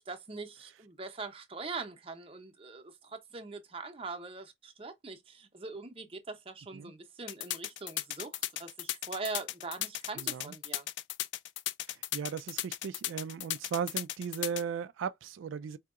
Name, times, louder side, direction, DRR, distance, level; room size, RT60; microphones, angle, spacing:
voice 1, 0.0-10.9, right 3 dB, 30° right, 0.7 m, -42 dB
sound 1, 7.3-14.6, left 14 dB, 70° left, 0.4 m, -35 dB
voice 2, 10.2-10.5 11.9-15.8, right 7 dB, 85° right, 0.3 m, -37 dB
4.6 x 2.7 x 2.4 m
head